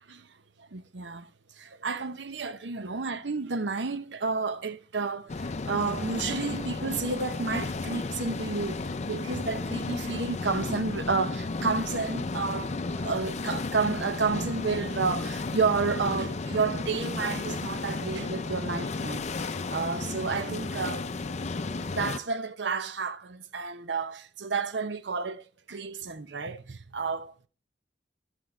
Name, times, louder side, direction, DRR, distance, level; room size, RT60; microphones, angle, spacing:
voice 1, 0.6-21.1 21.8-27.5, right 4 dB, 75° right, 0.9 m, -31 dB
sound 1, 5.3-22.2, left 3 dB, 40° left, 0.5 m, -33 dB
13.5 x 6.3 x 4.4 m
head